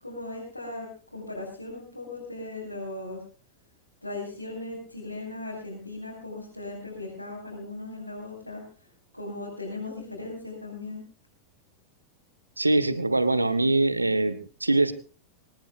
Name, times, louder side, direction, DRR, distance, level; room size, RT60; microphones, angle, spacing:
voice 1, 0.0-3.2 4.0-8.6 9.1-11.0, left 2 dB, 85° left, -6 dB, 7.1 m, -38 dB
voice 2, 12.6-14.9, right 2 dB, 85° right, 14 dB, 1.5 m, -23 dB
24.5 x 18.5 x 2.5 m, 0.38 s
figure-of-eight pair, 90°, 0 cm